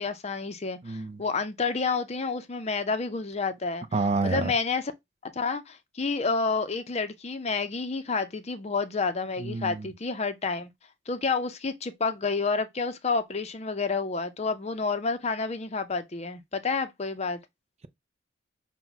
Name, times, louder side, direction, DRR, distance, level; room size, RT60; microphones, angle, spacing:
voice 1, 0.0-3.9 4.2-4.9 5.3-10.7 11.1-17.4, left 4 dB, 35° left, 0.6 m, -29 dB
voice 2, 0.8-1.2 3.9-4.5 9.4-9.9, right 3 dB, 35° right, 0.4 m, -28 dB
5.8 x 2.2 x 4.0 m
head